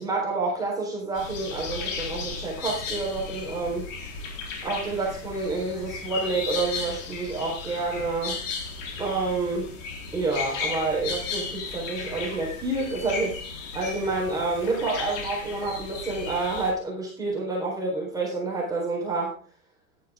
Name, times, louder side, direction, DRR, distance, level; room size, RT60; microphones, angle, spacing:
voice 1, 0.0-3.9 4.6-8.4 9.0-9.7 10.1-13.3 13.7-19.3, right 3 dB, 10° right, -3 dB, 4.1 m, -28 dB
sound 1, 1.1-16.7, left 4 dB, 60° left, 4.0 m, -35 dB
11.5 x 10.5 x 3.6 m, 0.39 s
supercardioid pair, 140°, 43 cm